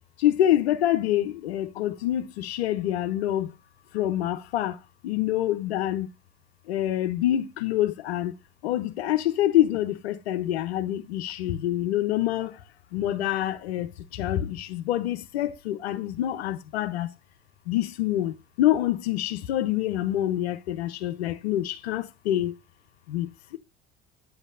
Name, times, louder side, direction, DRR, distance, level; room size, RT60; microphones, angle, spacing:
voice 1, 0.2-3.5 3.9-6.1 6.7-8.3 8.6-12.6 12.9-17.1 17.7-22.6 23.1-23.6, left 13 dB, 75° left, 0.8 m, -26 dB
9.6 x 8.1 x 2.5 m
hypercardioid pair, 65°, 32 cm